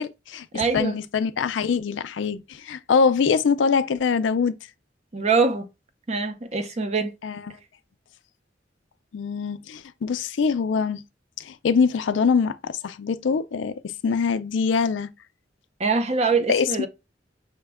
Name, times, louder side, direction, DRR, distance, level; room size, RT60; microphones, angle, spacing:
voice 1, 0.0-4.5 7.2-7.6 9.1-11.0 11.4-13.7 14.0-15.1 16.5-16.9, left 5 dB, 80° left, 0.4 m, -23 dB
voice 2, 0.5-0.9 5.1-5.7 6.1-7.1 15.8-16.9, right 4 dB, 35° right, 0.6 m, -23 dB
5.9 x 2.2 x 3.4 m
head